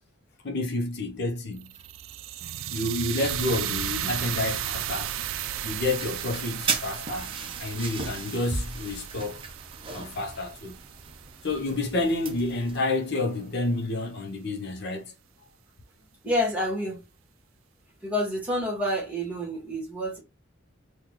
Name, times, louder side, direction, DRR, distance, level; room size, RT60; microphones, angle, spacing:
voice 1, 0.4-1.7 2.7-5.3 5.6-7.3 7.6-9.4 9.9-10.8 11.4-15.1, left 2 dB, 60° left, 0.7 m, -29 dB
sound 1, 1.6-11.7, right 11 dB, 80° right, 0.3 m, -35 dB
sound 2, 6.0-12.8, right 4 dB, 30° right, 0.6 m, -36 dB
voice 2, 16.2-17.1 18.0-20.2, equal, 10° right, 1.5 m, -28 dB
3.7 x 2.3 x 2.9 m
head